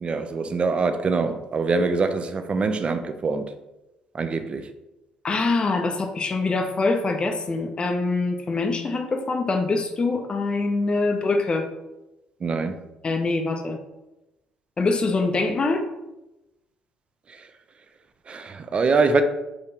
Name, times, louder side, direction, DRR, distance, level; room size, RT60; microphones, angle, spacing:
voice 1, 0.0-3.5 4.1-4.7 12.4-12.8 17.3-17.4 18.3-19.2, right 4 dB, 35° right, 0.4 m, -24 dB
voice 2, 5.2-11.7 13.0-13.8 14.8-15.8, left 3 dB, 30° left, 0.4 m, -24 dB
3.7 x 3.1 x 2.8 m
figure-of-eight pair, 50°, 3 cm